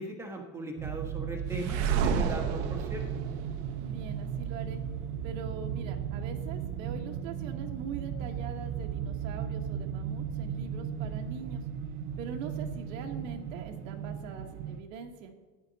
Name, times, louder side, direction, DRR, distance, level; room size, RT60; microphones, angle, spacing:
voice 1, 0.0-3.0, right 2 dB, 5° right, 1 dB, 1.2 m, -38 dB
sound 1, 0.8-14.8, right 8 dB, 35° right, 0.6 m, -36 dB
sound 2, 1.5-4.4, right 7 dB, 50° right, 0.9 m, -31 dB
voice 2, 3.8-4.8 5.2-11.6 12.2-15.3, right 6 dB, 70° right, 3 dB, 1.3 m, -42 dB
14.0 x 9.8 x 4.0 m, 1.3 s
supercardioid pair, 170°, 41 cm